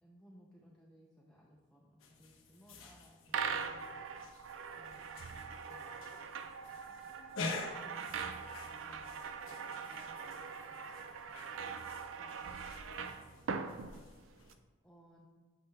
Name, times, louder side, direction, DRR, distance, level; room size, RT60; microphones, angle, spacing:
voice 1, 0.0-4.4 4.7-15.3, equal, 5° left, -4 dB, 0.6 m, -63 dB
sound 1, 2.0-14.6, left 3 dB, 85° left, 1.0 m, -49 dB
sound 2, 3.3-14.5, right 6 dB, 75° right, 0.4 m, -42 dB
8.2 x 5.7 x 3.3 m, 1.4 s
head